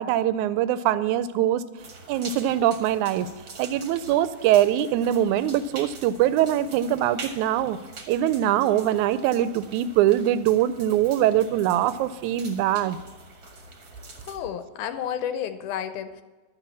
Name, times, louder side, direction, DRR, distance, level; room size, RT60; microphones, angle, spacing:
voice 1, 0.0-1.6 2.1-3.3 3.6-7.8 8.1-13.0, right 12 dB, 80° right, 14 dB, 1.8 m, -22 dB
sound 1, 1.8-14.4, right 3 dB, 45° right, 1.2 m, -44 dB
voice 2, 14.2-16.2, left 9 dB, 80° left, 9 dB, 2.1 m, -31 dB
11.5 x 6.0 x 8.2 m, 1.2 s
omnidirectional pair, 3.6 m